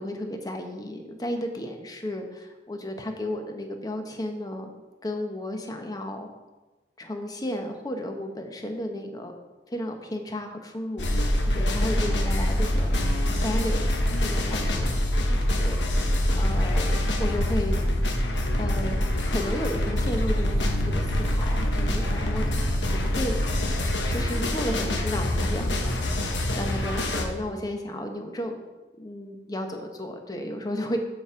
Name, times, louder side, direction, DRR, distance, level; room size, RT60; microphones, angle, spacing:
voice 1, 0.0-4.7 5.0-6.3 7.0-9.3 9.7-12.9 13.4-15.2 15.6-15.8 16.3-16.9 17.2-17.9 18.6-22.5 22.9-23.3 23.8-28.6 29.0-31.0, left 1 dB, 20° left, 4 dB, 0.9 m, -33 dB
sound 1, 11.0-27.3, left 1 dB, 85° left, 1.2 m, -25 dB
7.1 x 5.1 x 6.8 m, 1.2 s
head